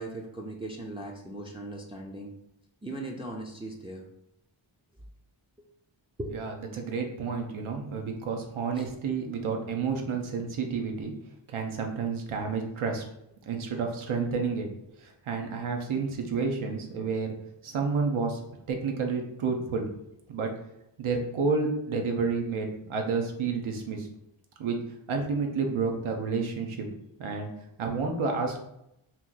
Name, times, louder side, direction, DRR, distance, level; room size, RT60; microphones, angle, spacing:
voice 1, 0.0-2.3 2.8-4.0 6.2-6.5 8.7-8.9, right 2 dB, 15° right, -1 dB, 0.3 m, -38 dB
voice 2, 6.3-11.1 11.5-13.0 13.5-14.7 15.0-17.3 17.6-18.4 18.7-19.9 20.3-20.5 21.0-24.1 24.6-24.8 25.1-26.9 27.2-27.5 27.8-28.6, right 4 dB, 90° right, 2 dB, 0.7 m, -30 dB
2.9 x 2.5 x 3.7 m, 0.81 s
wide cardioid pair, 90°, 48 cm